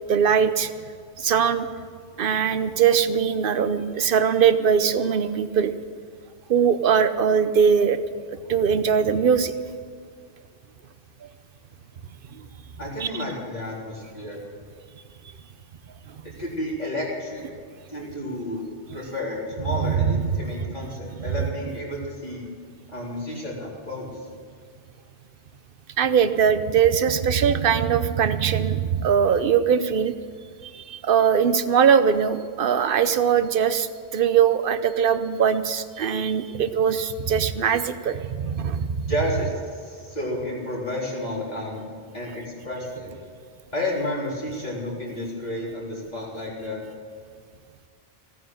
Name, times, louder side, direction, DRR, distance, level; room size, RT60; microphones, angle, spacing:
voice 1, 0.1-0.7 1.2-1.7 2.2-5.7 6.5-8.0 8.5-9.5 12.3-12.5 13.0-13.1 16.1-16.2 19.8-20.5 26.0-30.1 30.6-39.1, right 7 dB, 60° right, 12 dB, 0.9 m, -21 dB
voice 2, 12.8-14.4 16.2-17.5 17.9-18.7 18.9-22.4 22.9-24.2 39.1-43.2 43.7-46.8, left 1 dB, 40° left, -5 dB, 4.1 m, -31 dB
16.5 x 9.5 x 7.8 m, 2.1 s
omnidirectional pair, 1.1 m